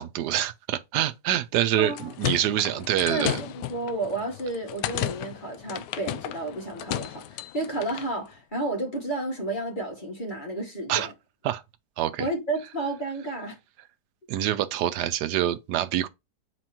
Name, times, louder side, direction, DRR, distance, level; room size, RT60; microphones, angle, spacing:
voice 1, 0.0-3.4 10.9-11.1 11.4-11.6 12.0-12.3 14.3-16.1, right 12 dB, 85° right, 1.2 m, -26 dB
sound 1, 1.7-8.1, left 13 dB, 90° left, 1.2 m, -34 dB
voice 2, 1.8-2.1 3.1-11.1 12.2-13.6, right 2 dB, 30° left, 2.2 m, -31 dB
7.7 x 4.1 x 3.0 m
omnidirectional pair, 1.8 m